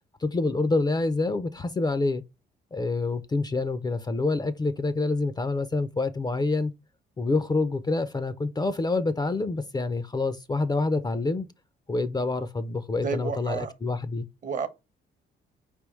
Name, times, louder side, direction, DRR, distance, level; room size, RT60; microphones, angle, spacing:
voice 1, 0.2-2.2 2.7-6.7 7.2-11.5 11.9-14.3, left 3 dB, 20° left, 0.4 m, -27 dB
voice 2, 13.0-13.7 14.4-14.7, right 6 dB, 45° right, 0.8 m, -30 dB
4.6 x 3.5 x 3.1 m
cardioid pair, 90°, 20 cm